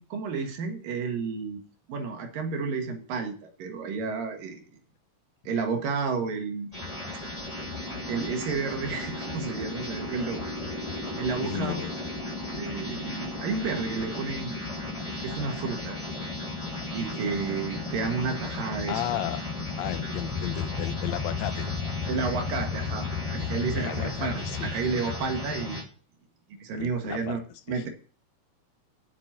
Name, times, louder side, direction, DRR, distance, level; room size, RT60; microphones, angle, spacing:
voice 1, 0.0-1.6 1.9-4.6 5.4-6.7 8.1-10.4 11.2-11.9 12.5-14.6 15.2-16.0 16.9-19.0 22.1-23.0 23.3-24.3 24.6-25.9 26.5-27.4 27.7-27.9, right 5 dB, 90° right, 4 dB, 3.4 m, -31 dB
sound 1, 6.7-25.8, left 3 dB, 10° left, 2.7 m, -34 dB
voice 2, 11.4-12.0 18.9-19.4 19.8-21.7 23.7-24.7 26.7-27.4 27.7-27.8, left 13 dB, 75° left, 11 dB, 1.8 m, -34 dB
7.7 x 6.7 x 7.4 m, 0.41 s
omnidirectional pair, 3.8 m